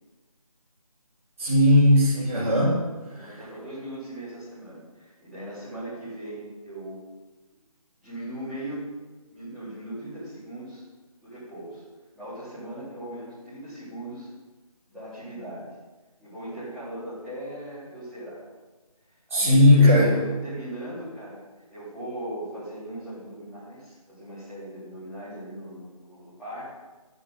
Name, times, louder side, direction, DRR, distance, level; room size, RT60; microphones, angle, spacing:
voice 1, 1.4-2.8 3.2-3.3 19.3-20.1, left 1 dB, 20° right, -9 dB, 3.3 m, -17 dB
voice 2, 3.1-7.0 8.0-8.9 9.3-10.8 11.2-11.8 12.1-14.3 14.9-15.7 16.2-18.4 19.3-21.4 21.7-26.7, right 1 dB, ahead, -18 dB, 4.2 m, -38 dB
9.9 x 9.7 x 9.3 m, 1.2 s
figure-of-eight pair, 175°, 19 cm